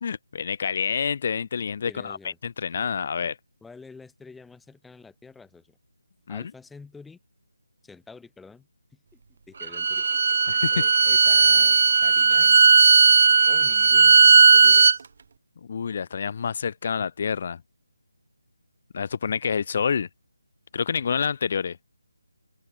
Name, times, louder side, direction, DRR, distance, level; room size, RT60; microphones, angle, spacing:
voice 1, 0.0-3.4 6.3-6.4 10.5-10.8 15.7-17.6 18.9-20.1 20.7-21.8, left 6 dB, 40° left, 3.1 m, -28 dB
voice 2, 1.8-2.4 3.6-5.8 6.3-7.2 7.8-9.2 9.5-10.1 10.7-12.7 13.5-15.1, left 4 dB, 5° left, 6.6 m, -48 dB
Bowed string instrument, 9.6-15.0, right 5 dB, 50° right, 2.0 m, -16 dB
figure-of-eight pair, 155°, 0 cm